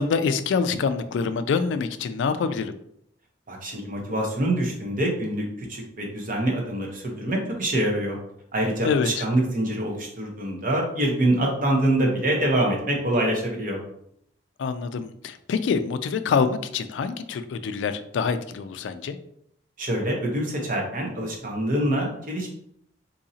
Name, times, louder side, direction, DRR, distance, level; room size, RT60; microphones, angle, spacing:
voice 1, 0.0-2.7 8.8-9.3 14.6-19.2, left 5 dB, 80° left, 11 dB, 0.3 m, -25 dB
voice 2, 3.5-8.2 8.5-13.8 19.8-22.5, right 1 dB, 50° right, 0 dB, 0.9 m, -25 dB
3.8 x 2.8 x 2.7 m, 0.72 s
head